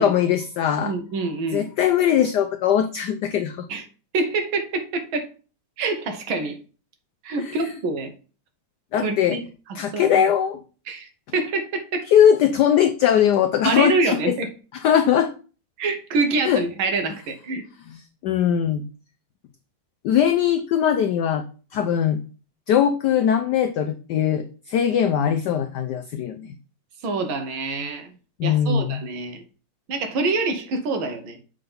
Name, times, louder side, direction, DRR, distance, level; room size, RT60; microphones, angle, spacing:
voice 1, 0.0-0.9 1.5-3.7 7.4-7.6 8.9-9.4 9.7-10.6 12.1-14.4 14.8-15.3 16.4-16.6 18.2-18.8 20.0-21.4 21.7-22.2 22.7-26.5 28.4-29.0, left 9 dB, 80° left, 7 dB, 0.9 m, -20 dB
voice 2, 0.8-1.7 3.7-3.8 4.1-5.3 5.8-6.6 7.2-8.1 9.0-9.4 9.9-10.2 10.9-12.1 13.6-14.5 15.8-17.6 27.0-28.1 28.4-29.4 29.9-31.4, right 3 dB, 70° right, 6 dB, 1.8 m, -26 dB
6.7 x 3.6 x 5.4 m, 0.36 s
omnidirectional pair, 2.4 m